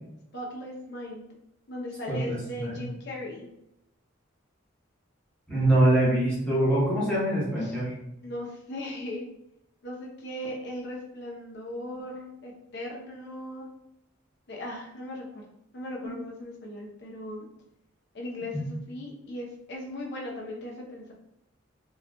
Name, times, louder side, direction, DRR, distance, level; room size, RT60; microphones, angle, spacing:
voice 1, 0.3-1.3 1.7-3.5 7.6-7.7 8.2-9.3 9.8-13.7 14.5-15.4 15.7-17.5 18.1-21.1, left 1 dB, 55° left, -1 dB, 0.7 m, -38 dB
voice 2, 2.1-2.8 5.5-8.0, right 1 dB, 5° left, -8 dB, 1.0 m, -24 dB
3.7 x 2.4 x 2.3 m, 0.83 s
head